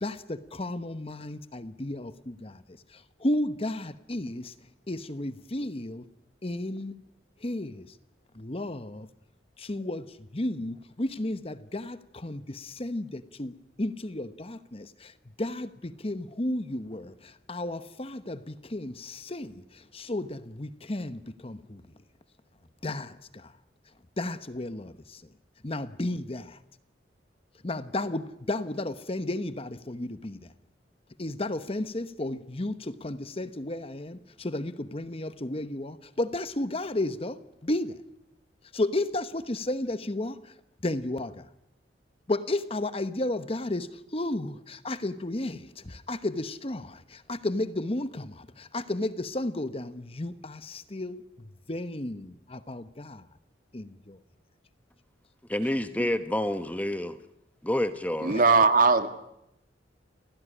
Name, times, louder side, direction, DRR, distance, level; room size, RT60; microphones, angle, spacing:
voice 1, 0.0-4.5 4.9-6.0 6.4-7.0 7.4-7.9 8.3-9.1 9.6-22.0 22.8-23.5 24.2-25.2 25.6-26.6 27.6-30.5 31.2-38.0 38.7-40.5 40.8-41.5 42.3-53.3 53.7-54.2 58.3-58.5, left 1 dB, 30° left, 1.0 m, -33 dB
voice 2, 55.5-57.2 57.6-58.4, left 1 dB, 10° left, 1.0 m, -28 dB
voice 3, 58.2-59.1, right 4 dB, 50° right, 1.9 m, -20 dB
29.5 x 16.5 x 10.0 m
head